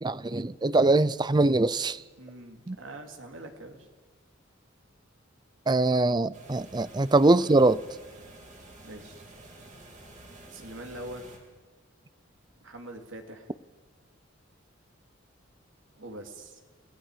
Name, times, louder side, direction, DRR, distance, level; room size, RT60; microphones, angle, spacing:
voice 1, 0.0-2.0 2.7-2.8 5.7-7.8, right 2 dB, 20° right, 0.5 m, -22 dB
voice 2, 2.2-3.9 8.8-9.3 10.5-11.3 12.6-13.5 15.9-16.6, right 1 dB, 75° right, 3.0 m, -43 dB
sound 1, 6.3-11.4, right 2 dB, 40° right, 4.0 m, -50 dB
30.0 x 17.5 x 5.1 m
head